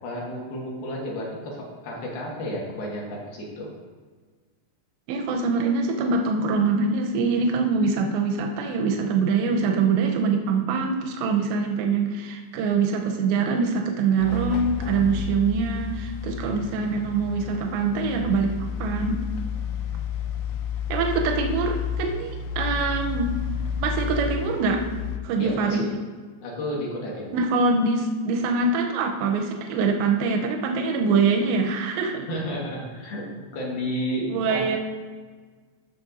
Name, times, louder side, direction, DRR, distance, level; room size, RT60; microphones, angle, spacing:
voice 1, 0.0-3.7 25.4-26.0 26.4-27.4 32.3-34.8, equal, 65° left, -3 dB, 3.1 m, -32 dB
voice 2, 5.1-18.6 18.8-19.2 20.9-23.3 23.8-24.8 25.2-25.9 27.3-32.3 34.3-34.8, right 4 dB, 90° right, 2 dB, 2.9 m, -24 dB
sound 1, 14.2-25.2, left 7 dB, 90° left, 2.9 m, -31 dB
15.0 x 6.5 x 2.6 m, 1.5 s
omnidirectional pair, 5.1 m